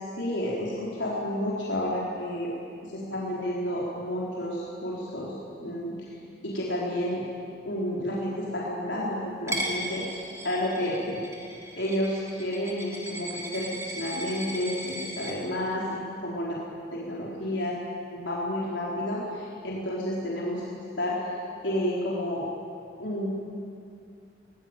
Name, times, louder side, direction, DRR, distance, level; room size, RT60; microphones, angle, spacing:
voice 1, 0.2-2.5 2.8-6.2 6.4-7.3 7.6-11.2 11.7-16.0 16.2-16.6 16.9-17.7 18.0-21.3 21.6-22.4 23.0-23.3, left 1 dB, 85° left, -5 dB, 4.2 m, -31 dB
Coin (dropping), 9.5-15.3, right 1 dB, 15° right, 3.1 m, -37 dB
23.0 x 20.5 x 9.0 m, 2.5 s
head